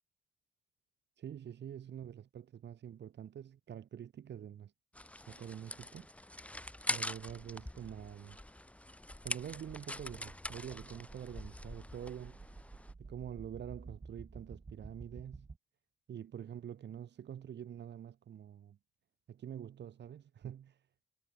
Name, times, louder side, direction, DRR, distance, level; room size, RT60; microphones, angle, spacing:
voice 1, 1.2-4.7 5.3-6.0 6.9-8.4 9.2-12.4 13.0-15.5 16.1-18.8 19.3-20.8, right 9 dB, 60° right, 3.5 m, -46 dB
sound 1, 4.9-12.9, left 1 dB, 5° left, 2.0 m, -44 dB
sound 2, 10.3-15.6, right 4 dB, 25° right, 4.8 m, -52 dB
cardioid pair, 90°, 20 cm